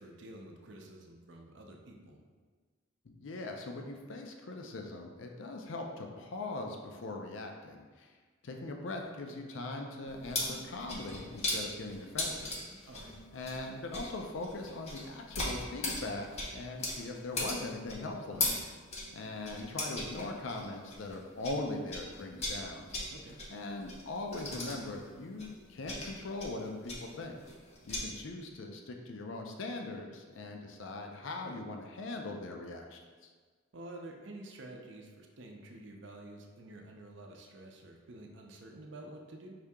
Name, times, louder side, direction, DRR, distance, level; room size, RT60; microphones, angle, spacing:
voice 1, 0.0-2.2 12.9-13.1 23.1-23.4 33.7-39.5, right 1 dB, 60° right, 1 dB, 0.6 m, -49 dB
voice 2, 3.1-8.1 8.4-13.0 13.3-18.6 19.1-23.1 23.5-27.4 27.9-33.3, left 2 dB, 70° left, 3 dB, 0.5 m, -41 dB
sound 1, 10.1-21.6 21.9-28.0, left 2 dB, 30° left, 0.7 m, -39 dB
5.0 x 2.8 x 3.5 m, 1.5 s
head